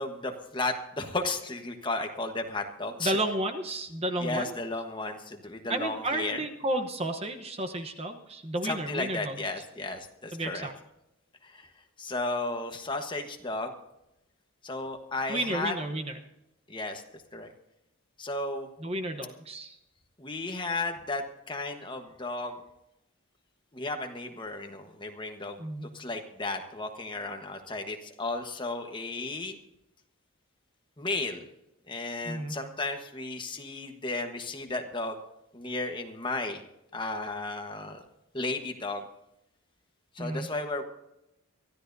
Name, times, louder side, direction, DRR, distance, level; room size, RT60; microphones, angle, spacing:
voice 1, 0.0-3.2 4.2-6.4 8.6-10.7 11.4-11.7 12.0-13.7 14.6-15.7 16.7-17.0 17.3-17.5 18.2-18.7 20.2-22.6 23.7-29.6 31.0-31.4 31.9-35.2 35.5-36.6 36.9-38.0 38.3-39.1 40.1-40.8, left 2 dB, 20° left, 5 dB, 1.2 m, -34 dB
voice 2, 3.0-4.5 5.7-9.4 10.3-10.7 15.3-16.2 18.8-19.8 25.6-25.9 32.2-32.6 40.2-40.5, right 1 dB, 25° right, 6 dB, 0.9 m, -32 dB
24.0 x 14.0 x 2.7 m, 0.87 s
head